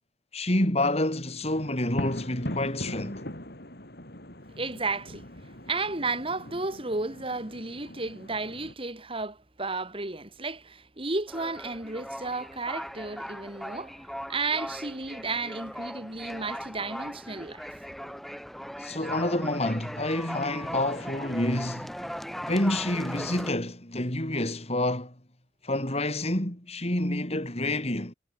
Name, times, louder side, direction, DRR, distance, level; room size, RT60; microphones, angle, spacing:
voice 1, 0.3-3.2 18.8-21.9 22.4-25.1 25.6-28.1, left 1 dB, 35° left, 4.7 m, -28 dB
sound 1, 1.4-8.7, left 1 dB, 60° left, 6.0 m, -40 dB
voice 2, 4.6-5.3 5.7-18.2, right 3 dB, 30° right, 3.7 m, -33 dB
sound 2, 11.3-23.5, equal, ahead, 2.8 m, -39 dB
head